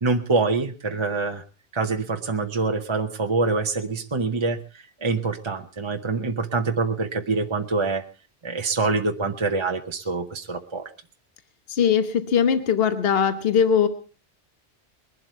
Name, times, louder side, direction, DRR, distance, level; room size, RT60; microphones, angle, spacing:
voice 1, 0.0-1.4 1.7-8.0 8.4-10.9, right 3 dB, 30° right, 5 dB, 0.8 m, -25 dB
voice 2, 11.7-13.9, left 7 dB, 55° left, 9 dB, 1.3 m, -20 dB
21.0 x 11.5 x 4.5 m, 0.36 s
omnidirectional pair, 1.2 m